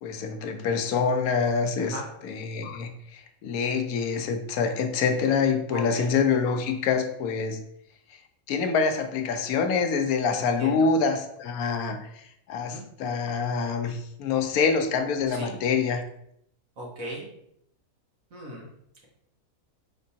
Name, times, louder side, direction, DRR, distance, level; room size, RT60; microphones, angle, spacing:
voice 1, 0.0-7.6 8.5-12.0 12.5-16.0, left 5 dB, 85° left, 6 dB, 1.1 m, -26 dB
voice 2, 5.7-6.0 10.4-10.9 12.7-12.8 15.3-15.5 16.8-17.3 18.3-18.6, equal, 70° right, -3 dB, 1.7 m, -37 dB
5.2 x 3.7 x 2.7 m, 0.74 s
omnidirectional pair, 1.5 m